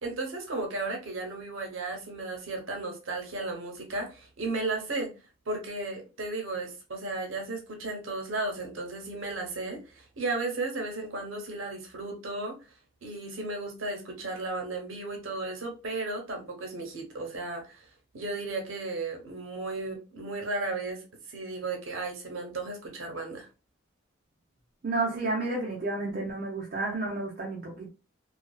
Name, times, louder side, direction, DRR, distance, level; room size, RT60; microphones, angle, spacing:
voice 1, 0.0-5.1 5.5-12.6 13.0-17.9 18.1-23.5, right 2 dB, 80° right, 0.8 m, -34 dB
voice 2, 24.8-27.9, right 2 dB, 45° right, 0.5 m, -31 dB
2.5 x 2.3 x 2.2 m
head